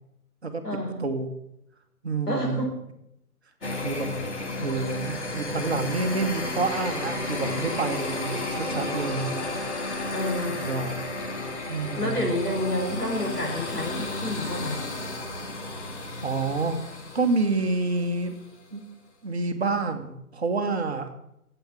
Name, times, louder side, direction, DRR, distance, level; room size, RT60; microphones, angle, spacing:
voice 1, 0.6-1.0 2.3-2.8 3.6-3.7 10.1-10.6 12.0-14.8, left 1 dB, 80° left, 0 dB, 4.2 m, -29 dB
voice 2, 2.0-2.6 3.7-4.1 4.6-9.5 10.6-11.0 11.7-12.3 16.2-16.8 17.1-18.3 18.7-18.9 19.2-21.1, right 3 dB, 45° right, 7 dB, 1.2 m, -28 dB
sound 1, 3.6-18.4, left 2 dB, 50° left, 1.7 m, -33 dB
9.0 x 8.1 x 7.3 m, 0.81 s
figure-of-eight pair, 145°, 45 cm